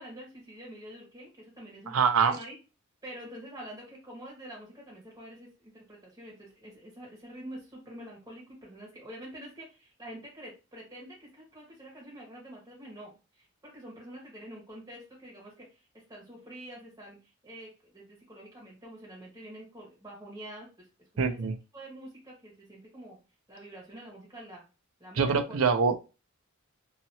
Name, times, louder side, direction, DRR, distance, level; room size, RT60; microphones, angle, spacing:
voice 1, 0.0-1.9 2.3-2.6 3.0-17.2 17.4-20.7 21.2-21.4 21.7-23.2 23.5-24.6 25.0-25.6, right 1 dB, 15° right, -4 dB, 1.3 m, -46 dB
voice 2, 1.9-2.3 21.2-21.5 25.2-26.0, right 5 dB, 75° right, 9 dB, 0.5 m, -24 dB
2.8 x 2.8 x 2.8 m, 0.29 s
head